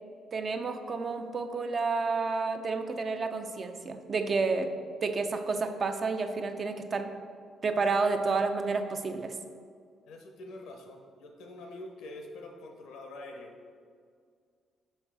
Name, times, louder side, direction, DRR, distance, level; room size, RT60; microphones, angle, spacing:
voice 1, 0.3-4.7 5.0-7.1 7.6-9.4, right 4 dB, 45° right, 7 dB, 0.5 m, -30 dB
voice 2, 10.0-13.6, left 2 dB, 85° left, 3 dB, 0.8 m, -45 dB
5.6 x 5.5 x 3.3 m, 2.1 s
cardioid pair, 90°, 0 cm